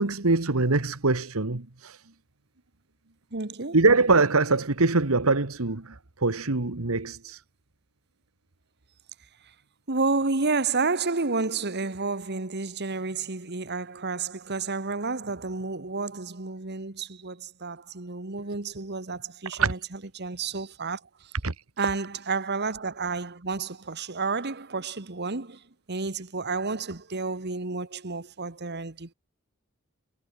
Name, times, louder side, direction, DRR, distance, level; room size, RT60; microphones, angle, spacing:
voice 1, 0.0-2.0 3.7-7.4 19.6-19.7 21.4-21.5, right 3 dB, 85° right, 1.6 m, -23 dB
voice 2, 3.3-3.8 9.4-9.5 9.9-21.3 21.8-29.1, right 4 dB, 50° right, 1.7 m, -31 dB
head